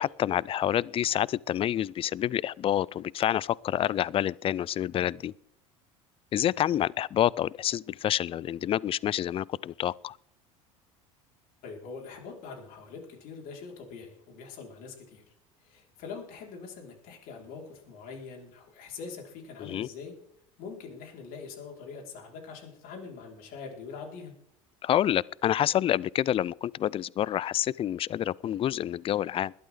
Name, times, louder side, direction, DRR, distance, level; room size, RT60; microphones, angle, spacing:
voice 1, 0.0-5.3 6.3-10.1 19.6-19.9 24.8-29.5, left 11 dB, 30° left, 0.4 m, -28 dB
voice 2, 11.6-15.2 15.6-20.2 20.6-24.3, left 5 dB, 55° left, 5.0 m, -43 dB
20.5 x 12.0 x 3.9 m
hypercardioid pair, 75°, 18 cm